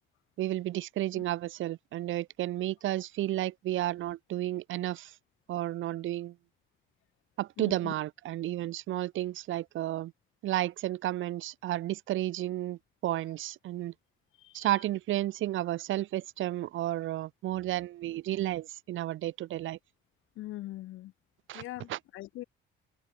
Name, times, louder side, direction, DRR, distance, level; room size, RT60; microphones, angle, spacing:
voice 1, 0.4-5.1 5.5-6.3 7.4-10.1 10.4-13.9 14.5-19.8 21.5-21.6 21.9-22.0, right 14 dB, 80° right, 1.2 m, -32 dB
voice 2, 7.6-7.9 14.4-14.7 20.4-21.1 21.5-22.4, left 16 dB, 90° left, 2.1 m, -42 dB
cardioid pair, 90°, 20 cm